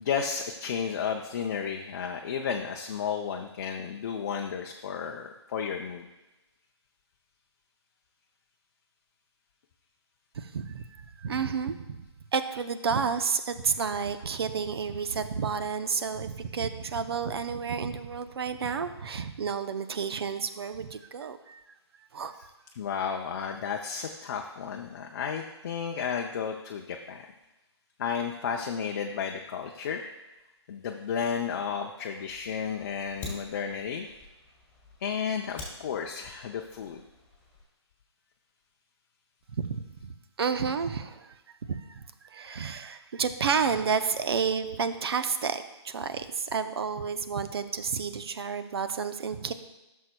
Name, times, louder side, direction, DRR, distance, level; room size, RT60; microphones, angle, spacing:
voice 1, 0.0-6.1 22.7-27.2 28.0-30.0 30.7-34.1 35.0-37.0, left 7 dB, 40° left, 2 dB, 0.5 m, -33 dB
voice 2, 10.3-12.0 12.3-21.6 22.1-22.4 39.6-41.4 41.7-49.5, right 6 dB, 60° right, 10 dB, 0.7 m, -31 dB
Fire, 32.3-37.6, left 2 dB, 10° left, 2.0 m, -47 dB
12.5 x 6.4 x 2.2 m, 1.0 s
hypercardioid pair, 150°, 15 cm